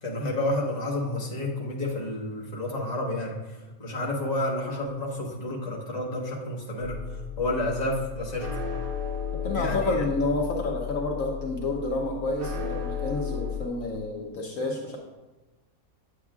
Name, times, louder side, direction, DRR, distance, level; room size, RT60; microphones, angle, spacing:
voice 1, 0.0-8.6 9.5-10.0, left 1 dB, 30° left, -3 dB, 1.3 m, -30 dB
sound 1, 6.8-13.7, left 7 dB, 75° right, 2.3 m, -34 dB
voice 2, 9.4-15.0, left 2 dB, 65° left, 0 dB, 1.2 m, -29 dB
8.7 x 7.6 x 2.4 m, 1.1 s
omnidirectional pair, 1.5 m